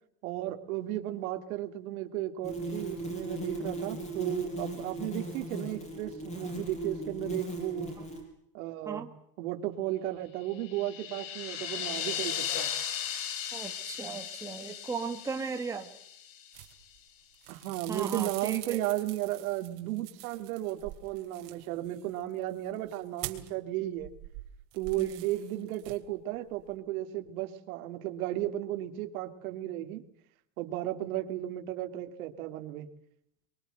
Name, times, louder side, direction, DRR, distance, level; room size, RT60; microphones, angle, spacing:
voice 1, 0.2-8.0 8.5-9.1 9.4-12.7 17.5-24.1 24.7-30.0 30.6-32.9, right 14 dB, 75° right, 7 dB, 2.9 m, -34 dB
sound 1, 2.4-8.2, right 2 dB, 15° left, 5.6 m, -38 dB
sound 2, 10.5-16.7, left 9 dB, 55° left, 3.3 m, -37 dB
voice 2, 13.5-15.9 17.9-18.8 25.0-25.2, right 5 dB, 5° right, 4 dB, 1.3 m, -37 dB
sound 3, 16.5-17.1 17.3-23.6 24.0-26.2 26.5-26.8, right 19 dB, 60° right, 3.0 m, -45 dB
24.0 x 23.0 x 8.0 m, 0.74 s
cardioid pair, 180°, 42 cm